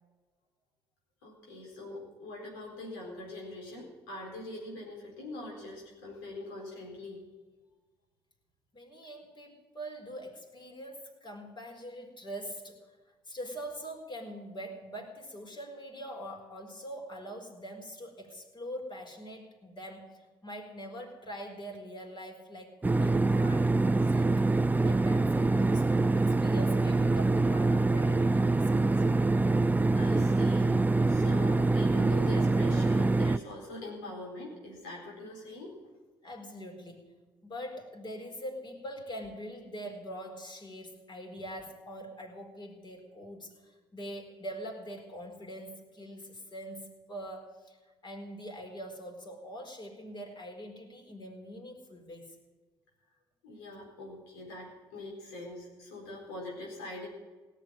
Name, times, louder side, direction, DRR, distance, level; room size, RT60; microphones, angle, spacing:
voice 1, 1.2-7.2 29.9-35.8 53.4-57.1, left 2 dB, 85° left, -1 dB, 4.2 m, -43 dB
voice 2, 8.7-12.8 13.3-24.5 24.8-28.9 36.2-37.2 37.4-47.8 48.0-52.3, equal, 40° left, 2 dB, 4.5 m, -43 dB
sound 1, 22.8-33.4, right 2 dB, 15° right, 0.5 m, -25 dB
17.5 x 7.5 x 9.8 m, 1.3 s
hypercardioid pair, 50°, 13 cm